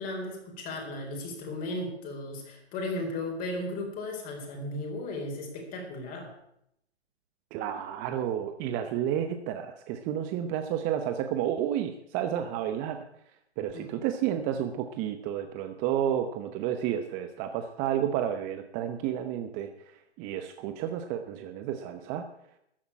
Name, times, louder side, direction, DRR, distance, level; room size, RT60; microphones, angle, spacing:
voice 1, 0.0-6.3 13.7-13.8, left 2 dB, 25° left, 1 dB, 4.3 m, -35 dB
voice 2, 7.5-13.0 13.6-19.7 20.2-22.3, right 10 dB, 25° right, 8 dB, 0.9 m, -31 dB
14.0 x 8.5 x 8.7 m, 0.79 s
hypercardioid pair, 130°, 33 cm